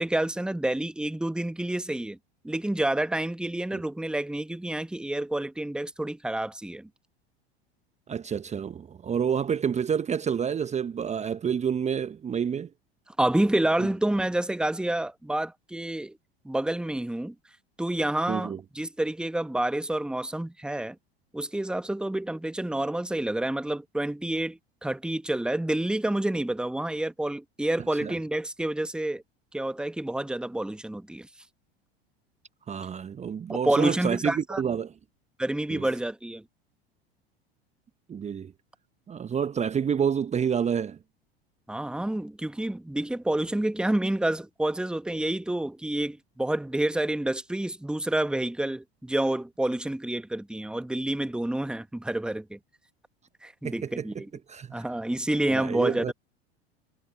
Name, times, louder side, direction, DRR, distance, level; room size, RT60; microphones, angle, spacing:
voice 1, 0.0-2.2 2.4-6.9 13.2-16.2 16.4-17.3 17.8-21.0 21.3-29.2 29.5-31.3 33.5-34.6 35.4-36.4 41.7-52.6 53.4-54.3 54.7-56.1, right 1 dB, 5° right, 1.5 m, -28 dB
voice 2, 8.1-12.7 13.8-13.9 18.3-18.6 28.0-28.1 32.7-34.9 35.7-35.9 38.1-38.5 39.1-41.0 53.6-54.2 54.5-54.8 55.5-56.1, right 7 dB, 20° right, 1.3 m, -28 dB
figure-of-eight pair, 80°, 31 cm